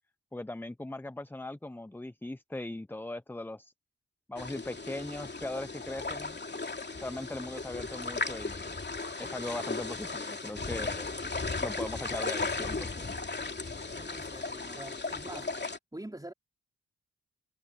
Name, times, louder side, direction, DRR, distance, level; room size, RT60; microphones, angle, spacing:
voice 1, 0.3-3.7 4.3-6.4 7.0-8.7 9.2-11.1 11.6-13.1, left 2 dB, 5° left, 0.7 m, -39 dB
sound 1, 4.4-15.8, left 3 dB, 35° left, 2.7 m, -36 dB
voice 2, 14.0-15.7 15.9-16.3, right 1 dB, 10° right, 3.9 m, -45 dB
cardioid pair, 50°, 30 cm